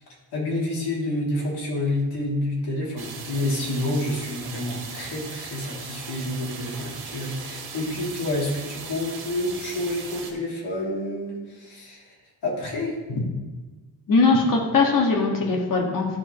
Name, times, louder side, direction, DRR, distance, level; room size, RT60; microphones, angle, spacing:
voice 1, 0.3-12.0 12.4-13.0, left 1 dB, 75° left, -5 dB, 3.0 m, -28 dB
sound 1, 3.0-10.3, right 5 dB, 65° right, 1.6 m, -38 dB
voice 2, 14.1-16.2, left 3 dB, 50° left, -1 dB, 1.9 m, -20 dB
13.0 x 5.6 x 3.1 m, 1.2 s
wide cardioid pair, 145°, 41 cm